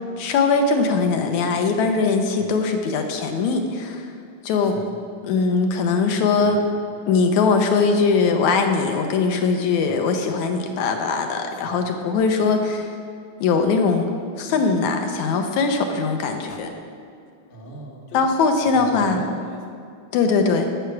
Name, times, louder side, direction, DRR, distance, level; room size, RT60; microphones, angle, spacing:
voice 1, 0.2-4.1 4.4-4.8 5.3-6.6 7.1-12.9 13.4-14.1 14.4-16.7 18.1-19.2 20.1-20.7, left 4 dB, 75° left, 4 dB, 1.9 m, -21 dB
voice 2, 11.5-11.8 12.4-12.5 17.5-18.3 18.6-19.6, right 1 dB, 55° left, -1 dB, 0.6 m, -39 dB
11.5 x 7.2 x 5.9 m, 2.4 s
omnidirectional pair, 3.6 m